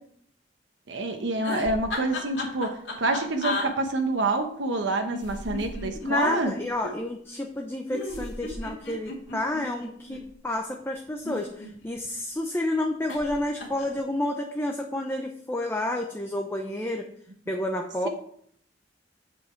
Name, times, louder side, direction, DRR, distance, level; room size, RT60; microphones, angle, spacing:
voice 1, 0.9-6.5 6.8-6.9, right 2 dB, 70° right, 5 dB, 1.0 m, -27 dB
sound 1, 1.4-3.7 5.1-6.6 7.9-10.2 11.1-12.1 13.1-13.3 13.6-14.0, left 2 dB, 70° left, 2.3 m, -34 dB
voice 2, 6.0-17.1 17.5-18.1, left 1 dB, 10° left, 2 dB, 0.7 m, -30 dB
8.2 x 7.7 x 4.5 m, 0.64 s
head